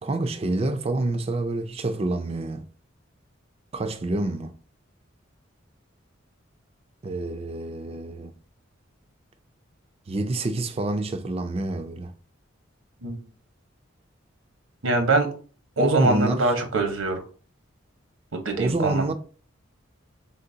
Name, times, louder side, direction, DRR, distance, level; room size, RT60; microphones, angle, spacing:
voice 1, 0.0-2.7 3.7-4.5 7.0-8.3 10.1-12.1 15.8-16.4 18.6-19.1, right 2 dB, 30° right, 0.4 m, -27 dB
voice 2, 14.8-15.3 15.8-17.2 18.3-19.1, right 2 dB, 85° right, 1.0 m, -23 dB
4.1 x 3.9 x 2.7 m
head